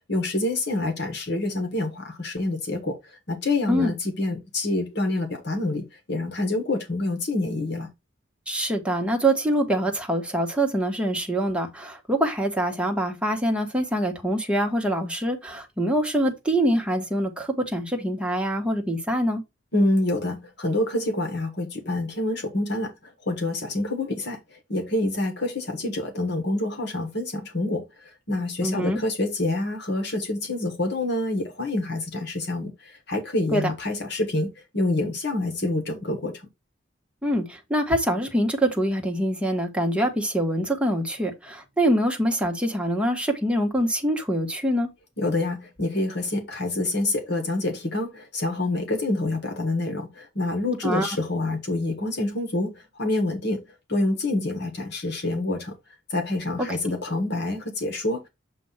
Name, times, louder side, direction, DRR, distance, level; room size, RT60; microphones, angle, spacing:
voice 1, 0.1-7.9 19.7-36.3 45.2-53.6 53.9-55.7 56.1-58.3, left 2 dB, 60° left, 1.5 m, -27 dB
voice 2, 8.5-19.4 28.6-29.0 33.5-33.7 37.2-44.9 50.8-51.2 56.6-56.7, right 1 dB, 5° right, 1.2 m, -24 dB
7.6 x 2.6 x 5.6 m
head